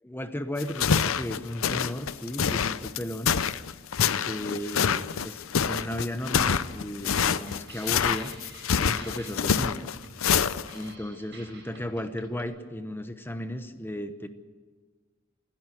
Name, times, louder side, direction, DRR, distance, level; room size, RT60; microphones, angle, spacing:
voice 1, 0.0-3.3 4.2-8.3 8.8-9.9 10.7-14.3, left 1 dB, 10° left, 9 dB, 0.9 m, -35 dB
sound 1, 0.6-10.9, left 7 dB, 85° left, 0.6 m, -26 dB
sound 2, 6.5-12.4, right 3 dB, 60° right, 7.0 m, -49 dB
27.5 x 10.5 x 9.3 m, 1.4 s
head